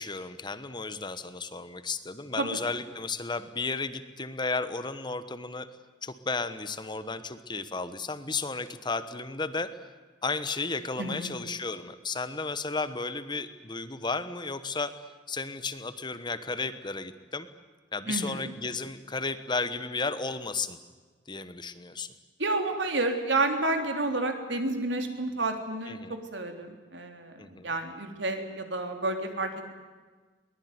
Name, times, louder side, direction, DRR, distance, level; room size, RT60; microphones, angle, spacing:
voice 1, 0.0-5.7 6.0-9.7 10.2-14.9 15.3-17.5 17.9-20.8 21.3-22.1 25.9-26.1 27.4-27.7, left 3 dB, 25° left, 12 dB, 1.2 m, -33 dB
voice 2, 11.0-11.3 18.1-18.5 22.4-27.4 27.6-29.7, right 2 dB, 75° right, 5 dB, 3.6 m, -30 dB
22.5 x 20.5 x 9.6 m, 1.4 s
head